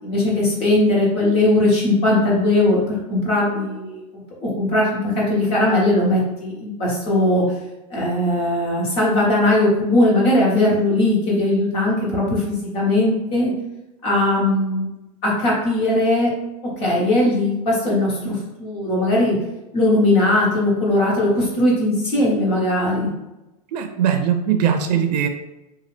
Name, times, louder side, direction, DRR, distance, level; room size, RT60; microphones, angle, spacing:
voice 1, 0.0-2.8 3.1-4.0 4.4-7.4 7.9-13.5 14.0-14.9 15.2-16.3 16.8-19.4 19.7-23.1, left 1 dB, 30° left, -4 dB, 1.1 m, -19 dB
voice 2, 23.7-25.3, right 8 dB, 85° right, 7 dB, 0.5 m, -20 dB
3.9 x 2.4 x 3.2 m, 0.96 s
supercardioid pair, 175°, 20 cm